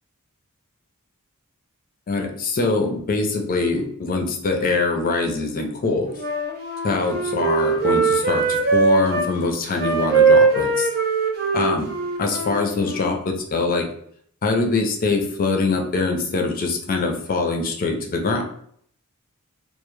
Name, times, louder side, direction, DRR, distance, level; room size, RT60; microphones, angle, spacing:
voice 1, 2.1-6.1 6.8-10.9 11.5-11.9 12.2-13.8 14.4-18.4, left 3 dB, 40° left, 2 dB, 0.5 m, -23 dB
Wind instrument woodwind instrument, 6.2-9.3 9.7-13.2, right 4 dB, 45° right, 0.6 m, -21 dB
2.1 x 2.1 x 3.0 m, 0.64 s
head